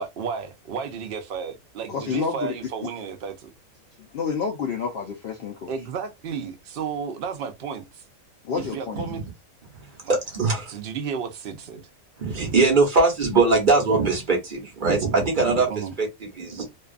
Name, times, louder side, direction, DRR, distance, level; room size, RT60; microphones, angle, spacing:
voice 1, 0.0-3.5 5.7-8.0 8.5-9.2 10.0-10.2 10.7-11.9 15.7-15.9, right 6 dB, 60° right, 0.6 m, -33 dB
voice 2, 1.9-2.5 4.1-5.7 8.4-9.0, left 6 dB, 75° left, 0.5 m, -29 dB
voice 3, 9.8-10.8 12.2-16.7, right 3 dB, 40° right, 0.9 m, -22 dB
2.6 x 2.3 x 2.4 m
omnidirectional pair, 1.5 m